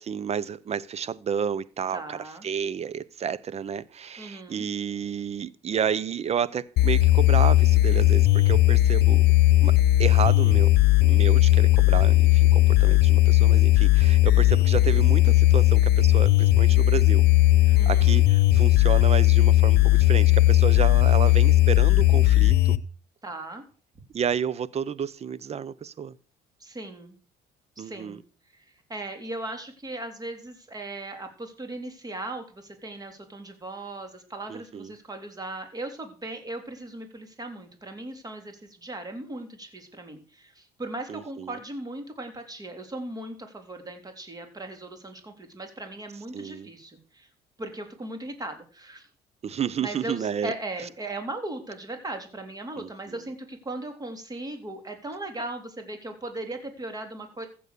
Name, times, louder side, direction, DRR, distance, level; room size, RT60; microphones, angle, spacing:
voice 1, 0.0-9.3 9.6-10.7 11.0-17.3 17.6-22.8 24.1-26.2 27.8-28.2 34.5-34.9 41.1-41.6 46.3-46.7 49.4-50.5 52.8-53.2, right 8 dB, 40° right, 0.8 m, -31 dB
voice 2, 1.9-2.5 4.2-4.7 14.8-15.0 17.7-18.2 23.2-23.6 26.6-27.2 27.8-28.2 28.5-28.6 28.9-47.3 47.6-49.1 49.8-57.5, right 2 dB, 20° right, 3.4 m, -38 dB
sound 1, 6.8-22.8, left 16 dB, 75° left, 0.9 m, -18 dB
15.0 x 7.1 x 6.8 m
cardioid pair, 110°, 17 cm